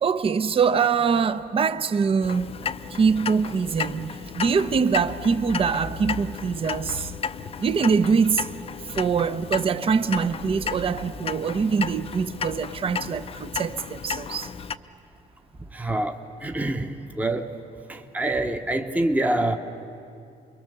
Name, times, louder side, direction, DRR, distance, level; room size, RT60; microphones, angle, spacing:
voice 1, 0.0-2.5 2.9-4.1 4.3-7.1 7.6-8.5 8.9-14.5, right 5 dB, 35° right, 0.7 m, -23 dB
Clock, 2.2-14.8, left 6 dB, 35° left, 0.6 m, -34 dB
voice 2, 15.7-17.5 17.9-19.6, right 1 dB, 10° right, 1.0 m, -26 dB
29.0 x 22.5 x 6.8 m
cardioid pair, 110°, 17 cm